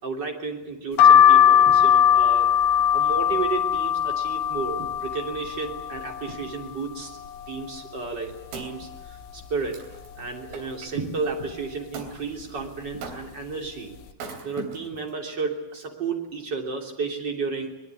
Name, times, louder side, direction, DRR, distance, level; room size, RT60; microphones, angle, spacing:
voice 1, 0.0-2.5 2.9-7.2 7.5-9.8 10.2-14.0 14.4-17.7, right 4 dB, 25° right, 2 dB, 3.0 m, -32 dB
sound 1, 1.0-6.7 7.1-7.9 8.3-8.4 8.5-9.7 10.2-10.5 11.3-11.6 12.4-12.6 12.9-13.1, left 9 dB, 70° left, 2.7 m, -20 dB
Wood, 8.0-10.9 11.9-12.2 13.0-13.5 14.1-15.1 15.8-15.9, right 4 dB, 80° right, 5.8 m, -41 dB
24.0 x 21.0 x 8.3 m, 0.89 s
omnidirectional pair, 5.5 m